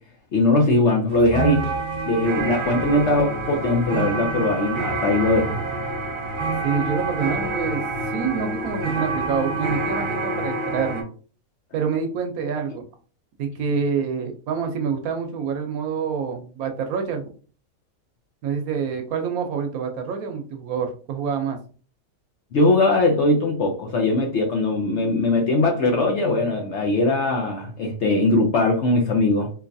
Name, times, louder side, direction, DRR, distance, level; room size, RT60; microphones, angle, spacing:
voice 1, 0.3-1.7 2.1-5.6 22.5-29.5, left 2 dB, 65° left, 2 dB, 0.7 m, -20 dB
sound 1, 1.1-11.0, right 3 dB, 50° right, 0.6 m, -27 dB
voice 2, 6.6-7.8 8.1-11.1 11.7-12.8 13.4-17.3 18.4-21.6, right 6 dB, 70° right, 5 dB, 1.0 m, -27 dB
3.8 x 2.8 x 2.6 m, 0.39 s
omnidirectional pair, 1.7 m